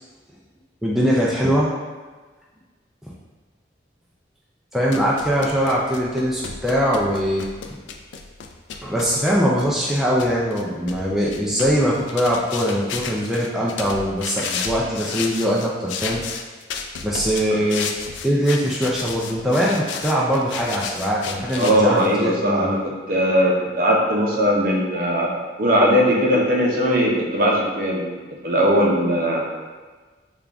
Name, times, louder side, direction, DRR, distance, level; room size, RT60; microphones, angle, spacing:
voice 1, 0.8-1.7 4.7-7.5 8.8-16.2 17.0-17.9 18.2-22.7, equal, ahead, -6 dB, 0.3 m, -21 dB
Footsteps Different Variations Street, 4.9-22.2, left 5 dB, 85° left, 0.3 m, -33 dB
voice 2, 21.6-25.3 25.6-28.0 28.4-29.4, equal, 50° right, -2 dB, 0.6 m, -19 dB
3.7 x 2.3 x 3.4 m, 1.3 s
head